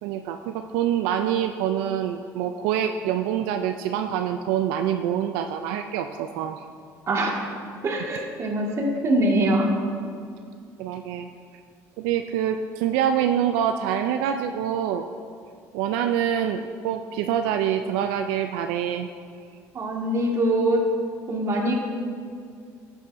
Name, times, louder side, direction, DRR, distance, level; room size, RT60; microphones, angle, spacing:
voice 1, 0.0-6.6 10.8-11.3 12.0-15.1 15.7-19.1, right 9 dB, 85° right, 6 dB, 0.4 m, -25 dB
voice 2, 7.1-7.4 7.8-9.7 19.7-20.8 21.3-21.7, right 1 dB, 40° right, -1 dB, 1.9 m, -23 dB
13.0 x 8.3 x 2.6 m, 2.2 s
supercardioid pair, 95°, 7 cm